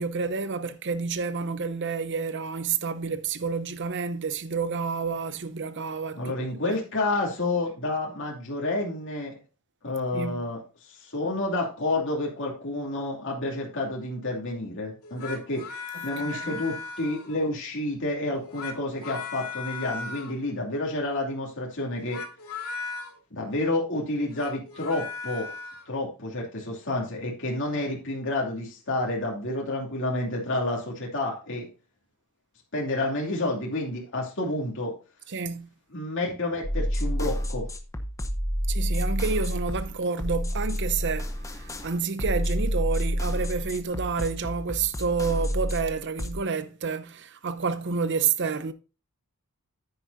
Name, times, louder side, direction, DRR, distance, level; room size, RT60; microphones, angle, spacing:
voice 1, 0.0-6.3 6.6-6.8 10.1-10.4 16.3-16.6 35.3-35.7 38.7-48.7, right 5 dB, 55° right, 0.7 m, -29 dB
voice 2, 6.1-9.3 9.8-22.2 23.3-25.5 25.9-31.7 32.7-34.9 35.9-37.7, left 2 dB, 60° left, 2.7 m, -29 dB
sound 1, 15.0-17.5 18.3-20.4 22.0-23.1 24.2-25.9, left 4 dB, 85° left, 2.2 m, -37 dB
sound 2, 36.6-46.4, equal, 15° left, 0.8 m, -29 dB
9.6 x 9.5 x 2.7 m
head